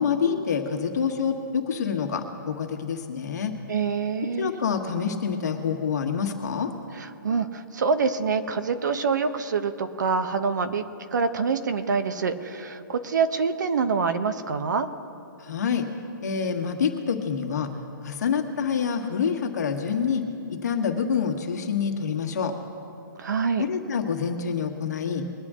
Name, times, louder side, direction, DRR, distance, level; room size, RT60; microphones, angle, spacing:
voice 1, 0.0-3.5 4.4-6.7 15.4-15.9 16.2-17.7 18.0-20.2 20.5-22.5 23.6-25.2, left 6 dB, 55° left, 3 dB, 1.6 m, -27 dB
voice 2, 3.7-4.5 6.9-10.8 11.1-14.9 23.2-23.6, right 5 dB, 60° right, 9 dB, 1.0 m, -26 dB
22.5 x 9.6 x 3.7 m, 2.8 s
hypercardioid pair, 175°, 11 cm